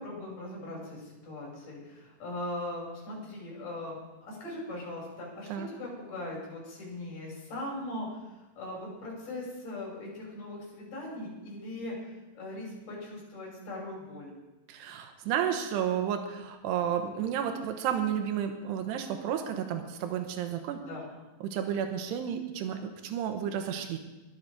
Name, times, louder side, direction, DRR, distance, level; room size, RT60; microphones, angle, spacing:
voice 1, 0.0-8.1 8.6-11.9 12.4-14.3 20.8-21.1, left 1 dB, 50° left, -3 dB, 7.1 m, -40 dB
voice 2, 14.7-20.8 21.4-24.0, right 9 dB, 85° right, 6 dB, 3.2 m, -32 dB
22.0 x 9.3 x 4.9 m, 1.1 s
omnidirectional pair, 4.8 m